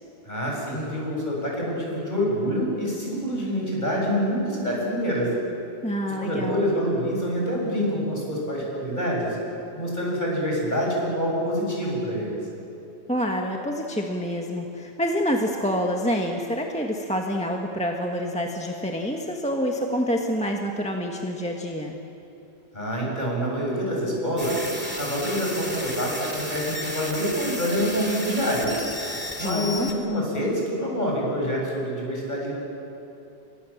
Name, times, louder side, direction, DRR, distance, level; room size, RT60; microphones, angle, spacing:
voice 1, 0.3-5.3 6.0-9.4 9.8-12.4 22.7-24.6 25.0-28.7 29.4-32.5, equal, 45° left, -3 dB, 7.9 m, -26 dB
voice 2, 5.8-6.6 13.1-22.0 29.4-29.9, equal, 5° left, 1 dB, 1.6 m, -27 dB
sound 1, 24.4-29.9, equal, 10° right, 2.8 m, -33 dB
30.0 x 24.5 x 7.4 m, 2.9 s
omnidirectional pair, 1.1 m